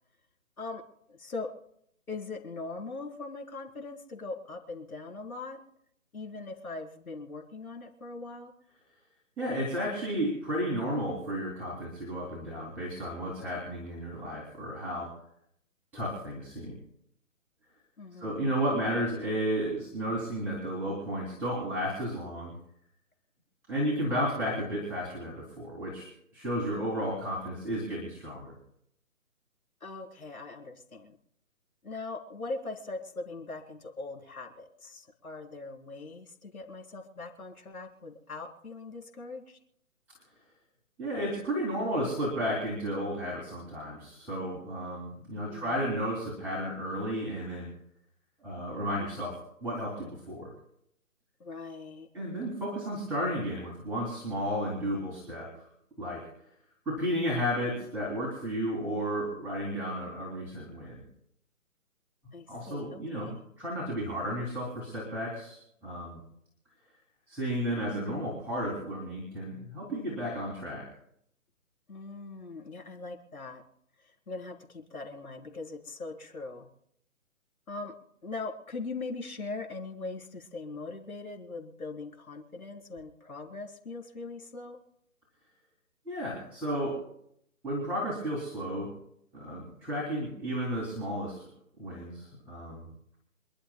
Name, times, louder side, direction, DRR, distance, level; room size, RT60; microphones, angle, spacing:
voice 1, 1.1-1.5 2.1-5.6 6.1-8.5 18.0-18.5 24.4-24.6 26.7-26.9 27.6-28.1 29.8-31.2 31.8-39.6 45.3-45.8 51.4-52.1 62.3-63.4 71.9-73.6 74.1-76.7 77.7-77.9 78.2-84.8, left 3 dB, 80° left, 1 dB, 4.2 m, -41 dB
voice 2, 9.4-15.1 15.9-16.7 18.2-22.5 23.7-26.1 26.3-28.5 41.0-47.7 48.4-50.5 52.1-55.5 56.0-56.2 56.9-61.0 62.5-66.2 67.3-70.8 86.1-87.0 87.6-88.9 89.3-91.4 91.8-92.8, equal, 5° right, -6 dB, 2.7 m, -33 dB
27.5 x 11.5 x 2.3 m, 0.74 s
figure-of-eight pair, 155°, 43 cm